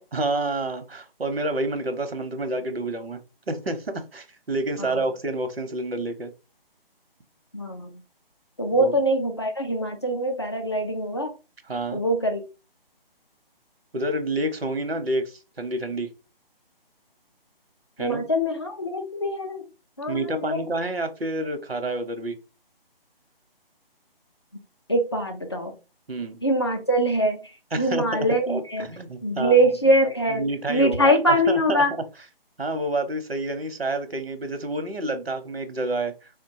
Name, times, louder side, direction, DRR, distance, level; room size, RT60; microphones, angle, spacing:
voice 1, 0.1-3.2 3.5-6.3 8.7-8.9 11.7-12.0 13.9-16.1 18.0-18.2 20.1-22.4 26.1-26.4 27.7-29.6 30.3-32.0 32.6-36.1, right 2 dB, 90° right, 0.8 m, -28 dB
voice 2, 7.5-7.9 8.6-11.3 11.9-12.4 18.0-19.6 20.0-20.6 24.9-25.8 26.4-27.4 27.8-28.8 29.2-31.9, equal, 30° left, 0.4 m, -23 dB
3.6 x 2.2 x 2.6 m
figure-of-eight pair, 150°, 30 cm